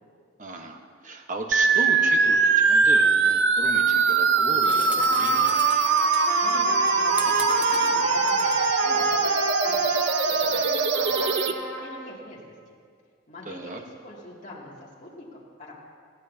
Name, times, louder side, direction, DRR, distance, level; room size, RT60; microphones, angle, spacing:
voice 1, 0.4-5.6 13.4-13.8, right 2 dB, 45° right, 3 dB, 1.2 m, -36 dB
sound 1, 1.5-11.5, right 4 dB, 65° right, 0.7 m, -22 dB
sound 2, 4.1-9.1, right 1 dB, 5° right, 0.6 m, -40 dB
Trumpet, 5.0-12.1, right 1 dB, 90° right, 2.6 m, -30 dB
voice 2, 6.4-11.5 11.8-12.5 13.3-15.7, left 1 dB, 40° left, -6 dB, 2.5 m, -43 dB
19.5 x 15.5 x 2.8 m, 2.1 s
head